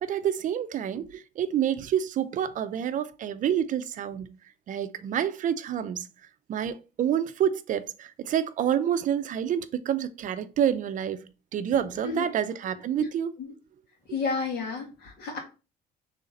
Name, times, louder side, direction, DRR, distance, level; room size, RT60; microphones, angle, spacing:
voice 1, 0.0-4.3 4.7-6.1 6.5-11.2 11.5-13.3 14.1-14.2, right 9 dB, 50° right, 0.5 m, -28 dB
voice 2, 14.1-15.4, left 4 dB, 70° left, 1.7 m, -31 dB
3.9 x 3.3 x 4.1 m
cardioid pair, 110°, 17 cm